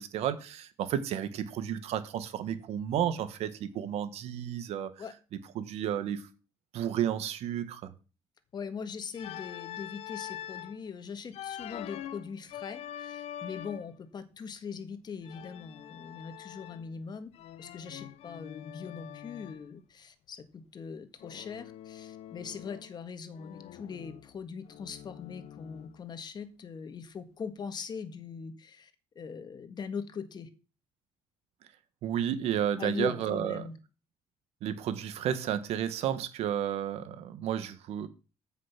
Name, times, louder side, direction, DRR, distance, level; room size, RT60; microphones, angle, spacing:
voice 1, 0.0-4.9 5.5-6.2 6.7-7.9 32.0-33.6 34.6-38.1, right 10 dB, 75° right, 1.6 m, -32 dB
voice 2, 8.5-17.3 17.6-28.9 29.2-30.5 32.8-33.7, left 6 dB, 40° left, 1.7 m, -41 dB
Organ, 9.1-10.8 11.3-14.0 15.2-17.0 17.3-19.6 21.2-23.0 23.3-26.0, left 11 dB, 75° left, 0.9 m, -44 dB
14.0 x 6.2 x 6.0 m
cardioid pair, 115°, 11 cm